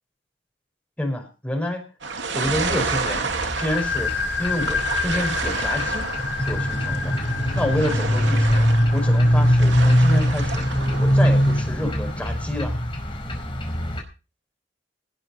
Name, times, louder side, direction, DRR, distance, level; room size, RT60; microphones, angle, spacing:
voice 1, 1.0-1.8 2.3-3.3 3.6-4.1 4.4-6.1 6.4-7.1 7.6-10.6 11.0-12.8, left 1 dB, 5° left, 3 dB, 5.7 m, -28 dB
sound 1, 2.0-11.6, right 4 dB, 75° right, 2.7 m, -31 dB
sound 2, 2.4-14.0, equal, 30° left, 5.0 m, -22 dB
sound 3, 3.6-11.0, left 5 dB, 75° left, 6.6 m, -31 dB
19.5 x 7.9 x 5.6 m, 0.33 s
head